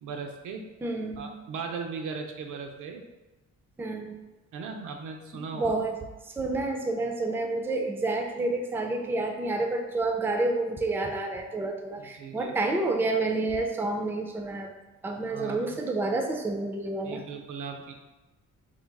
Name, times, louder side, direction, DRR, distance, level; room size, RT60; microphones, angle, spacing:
voice 1, 0.0-0.7 1.2-3.0 4.5-5.8 12.0-12.6 15.3-15.8 17.0-17.9, right 5 dB, 90° right, 3 dB, 0.6 m, -38 dB
voice 2, 0.8-1.3 3.8-4.2 5.5-6.0 6.3-14.7 15.0-17.2, right 2 dB, 10° right, 3 dB, 0.3 m, -29 dB
3.8 x 2.3 x 4.6 m, 1.1 s
cardioid pair, 130°, 30 cm